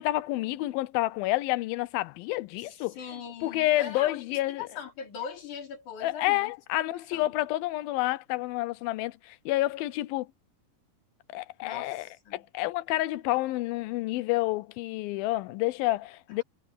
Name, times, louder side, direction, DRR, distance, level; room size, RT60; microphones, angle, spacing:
voice 1, 0.0-4.7 6.0-10.3 11.3-12.1 12.3-16.4, left 17 dB, 90° left, 2.5 m, -29 dB
voice 2, 3.0-6.5 6.9-7.3 11.6-12.4 16.3-16.4, left 7 dB, 60° left, 4.4 m, -41 dB
omnidirectional pair, 4.1 m